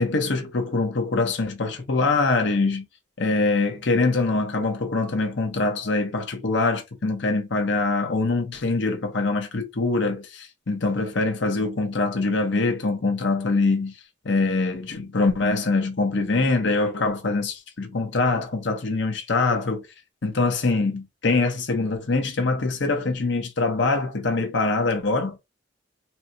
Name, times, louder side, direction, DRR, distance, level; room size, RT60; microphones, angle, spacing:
voice 1, 0.0-2.8 3.2-14.0 14.2-19.9 20.2-25.4, left 3 dB, 65° left, 0.8 m, -24 dB
4.2 x 2.2 x 2.6 m
head